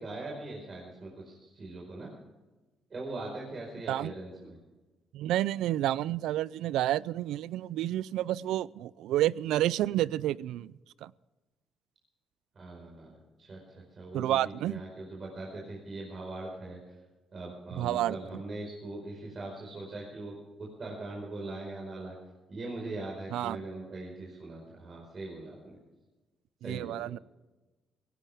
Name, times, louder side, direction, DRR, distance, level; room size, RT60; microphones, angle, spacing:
voice 1, 0.0-2.1 2.9-4.6 12.5-16.8 17.3-22.1 22.5-25.8 26.6-27.1, right 2 dB, 40° right, -2 dB, 4.9 m, -41 dB
voice 2, 5.1-10.7 11.0-11.1 14.1-14.8 17.7-18.2 23.3-23.6 26.6-27.2, right 13 dB, 90° right, 21 dB, 0.4 m, -30 dB
17.5 x 17.5 x 3.5 m, 1.2 s
cardioid pair, 90°, 0 cm